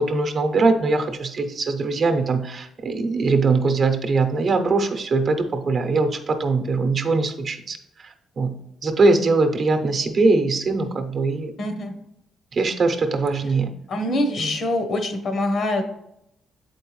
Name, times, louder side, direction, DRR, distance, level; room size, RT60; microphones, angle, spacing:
voice 1, 0.0-8.5 8.8-11.5 12.5-13.7 14.4-14.6, right 3 dB, 50° right, 7 dB, 0.8 m, -21 dB
voice 2, 11.6-12.0 13.9-15.8, left 1 dB, 60° left, 6 dB, 1.0 m, -24 dB
7.5 x 4.5 x 3.1 m, 0.80 s
cardioid pair, 90°, 0 cm